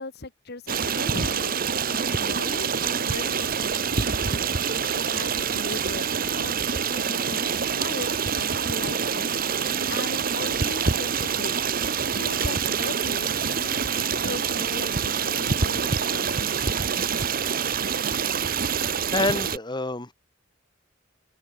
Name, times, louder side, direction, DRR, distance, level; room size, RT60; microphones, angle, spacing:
voice 1, 0.0-6.1 6.4-11.6 12.1-16.5, left 2 dB, 50° left, 1.6 m, -38 dB
Stream, 0.7-19.6, right 6 dB, 45° right, 1.0 m, -26 dB
voice 2, 19.1-20.1, left 2 dB, 20° left, 1.5 m, -27 dB
head